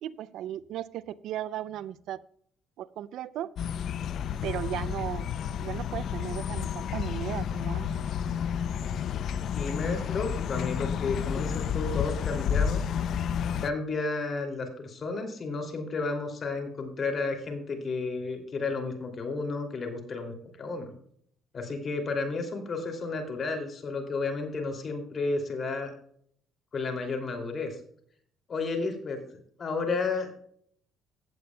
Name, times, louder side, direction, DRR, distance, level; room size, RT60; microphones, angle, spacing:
voice 1, 0.0-2.2 2.8-3.5 4.4-5.3 5.6-8.0, right 11 dB, 75° right, 19 dB, 0.4 m, -36 dB
sound 1, 3.6-13.7, left 8 dB, 60° left, 0.5 m, -31 dB
voice 2, 9.5-12.9 13.6-20.9 21.5-25.9 26.7-27.8 28.5-29.2 29.6-30.3, left 3 dB, 45° left, 4 dB, 2.7 m, -32 dB
15.5 x 8.5 x 2.3 m, 0.63 s
cardioid pair, 90°, 0 cm